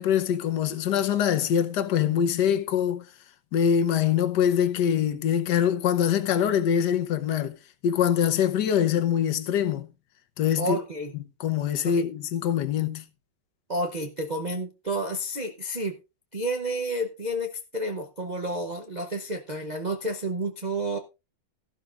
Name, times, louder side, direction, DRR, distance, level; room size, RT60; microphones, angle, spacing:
voice 1, 0.0-3.1 3.5-7.6 7.8-9.9 10.4-10.8 11.4-13.0, left 9 dB, 60° left, 1.5 m, -24 dB
voice 2, 10.6-11.1 11.8-12.1 13.7-16.0 16.3-21.0, right 1 dB, 80° right, 0.4 m, -30 dB
14.0 x 12.0 x 2.5 m
omnidirectional pair, 2.2 m